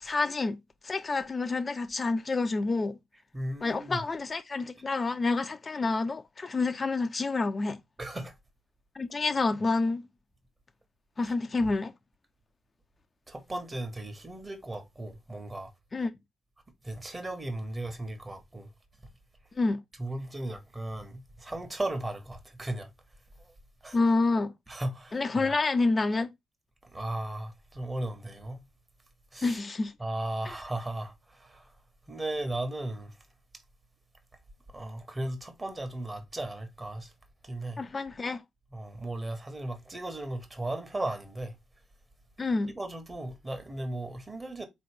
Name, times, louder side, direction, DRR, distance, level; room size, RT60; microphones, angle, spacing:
voice 1, 0.0-0.6 0.8-3.0 3.6-7.8 8.9-10.1 11.2-11.9 15.9-16.1 19.6-19.8 23.9-24.5 25.1-26.3 29.4-29.9 37.8-38.4 42.4-42.7, left 3 dB, 35° left, 0.5 m, -28 dB
voice 2, 3.3-4.0 8.0-8.3 11.2-11.3 13.3-15.7 16.8-18.7 20.0-22.9 23.4-23.5 23.8-24.0 24.7-25.5 26.9-28.6 29.3-29.6 30.0-31.7 32.1-33.2 34.7-37.1 37.4-37.8 38.7-41.6 42.7-44.7, right 1 dB, 25° right, 1.3 m, -36 dB
4.1 x 3.1 x 3.3 m
hypercardioid pair, 40°, 0 cm